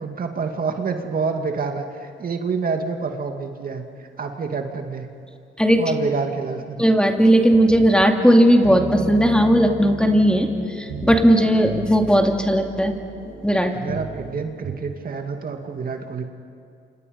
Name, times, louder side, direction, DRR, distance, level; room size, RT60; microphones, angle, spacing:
voice 1, 0.0-5.1 5.8-6.9 13.7-16.2, right 5 dB, 45° right, 4 dB, 2.4 m, -27 dB
voice 2, 6.8-10.5 10.8-13.0 13.4-13.7, equal, 5° left, 3 dB, 2.5 m, -16 dB
sound 1, 8.4-14.8, right 5 dB, 70° right, 5.2 m, -35 dB
29.5 x 27.0 x 5.5 m, 2.5 s
cardioid pair, 90°, 20 cm